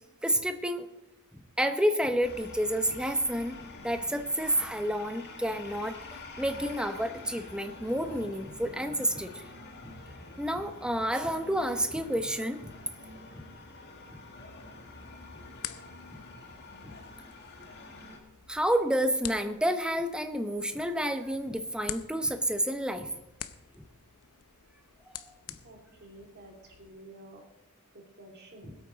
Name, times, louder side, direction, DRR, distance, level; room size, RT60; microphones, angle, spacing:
voice 1, 0.2-0.9 1.6-9.4 9.8-9.9 10.4-12.7 13.3-13.4 14.1-14.2 16.1-16.2 16.8-17.0 18.5-23.1 23.8-23.9 28.6-28.7, equal, 5° right, 7 dB, 0.8 m, -30 dB
sound 1, 2.2-18.2, left 2 dB, 50° left, 2.0 m, -47 dB
sound 2, 14.7-26.9, left 11 dB, 85° left, 0.7 m, -47 dB
voice 2, 25.6-27.4 28.2-28.8, right 1 dB, 50° right, 1 dB, 2.4 m, -50 dB
20.5 x 8.7 x 4.0 m, 0.96 s
head